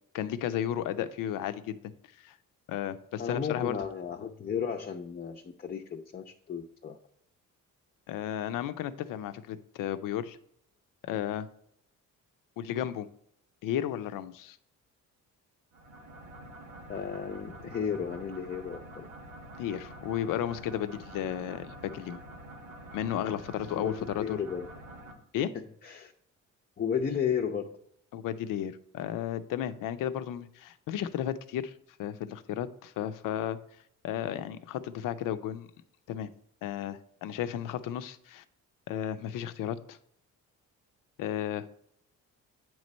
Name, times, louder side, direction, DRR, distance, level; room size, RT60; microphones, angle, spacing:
voice 1, 0.1-2.4 2.7-3.8 8.1-10.4 11.0-11.5 12.6-13.1 13.6-14.6 19.6-22.2 22.9-24.4 25.3-25.5 28.1-31.7 32.0-33.6 34.0-35.7 36.1-36.3 36.6-38.4 38.9-40.0 41.2-41.8, left 10 dB, 90° left, 11 dB, 0.5 m, -33 dB
voice 2, 3.2-7.0 16.9-19.1 23.7-24.7 25.5-26.1 26.8-27.7, left 7 dB, 30° left, 3 dB, 0.5 m, -34 dB
sound 1, 15.7-25.1, right 1 dB, 90° right, 1.2 m, -47 dB
8.8 x 3.1 x 5.1 m, 0.72 s
cardioid pair, 105°, 32 cm